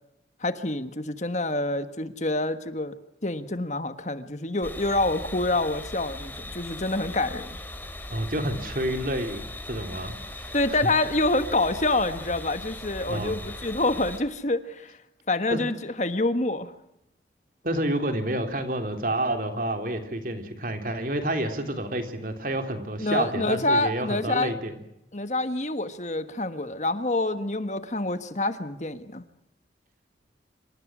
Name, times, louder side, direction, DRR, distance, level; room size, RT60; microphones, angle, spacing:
voice 1, 0.4-3.0 3.2-7.5 10.5-15.0 15.3-16.7 23.0-24.5 25.1-29.2, left 2 dB, 40° left, 10 dB, 1.4 m, -27 dB
sound 1, 4.6-14.2, left 1 dB, 10° left, 3.2 m, -39 dB
voice 2, 8.1-10.9 13.1-13.3 15.5-15.6 17.6-24.8, right 1 dB, 50° right, 6 dB, 3.4 m, -29 dB
27.0 x 26.5 x 6.2 m, 0.82 s
head